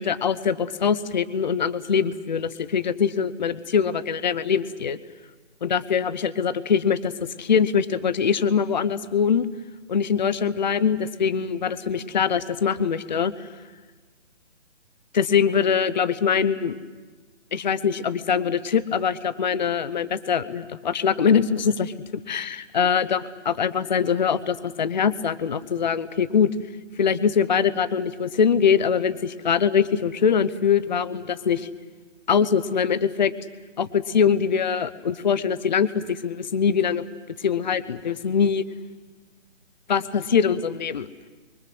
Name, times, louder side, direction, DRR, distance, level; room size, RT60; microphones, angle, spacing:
voice 1, 0.0-5.0 5.6-9.5 9.9-13.5 15.1-16.8 17.5-21.9 22.3-26.5 27.0-31.7 32.3-33.3 33.8-37.0 37.4-38.7 39.9-41.1, left 7 dB, 40° left, 16 dB, 0.8 m, -23 dB
26.0 x 24.0 x 7.8 m, 1.3 s
figure-of-eight pair, 160°, 36 cm